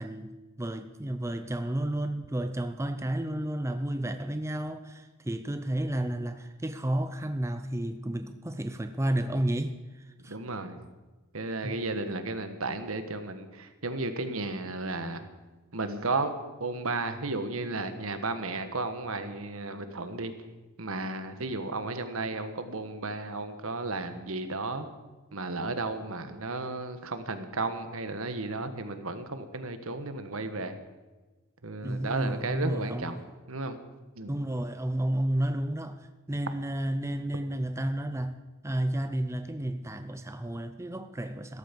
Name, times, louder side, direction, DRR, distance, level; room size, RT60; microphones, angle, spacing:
voice 1, 0.0-10.4 11.6-11.9 31.8-33.2 34.3-38.4 38.6-41.6, right 1 dB, 15° right, 0.6 m, -32 dB
voice 2, 10.3-10.8 11.3-15.3 15.7-16.3 16.6-20.3 20.8-24.9 25.3-30.8 31.6-33.2 33.5-33.8 34.2-34.4, right 3 dB, 65° right, 1.4 m, -33 dB
17.0 x 14.0 x 5.3 m
head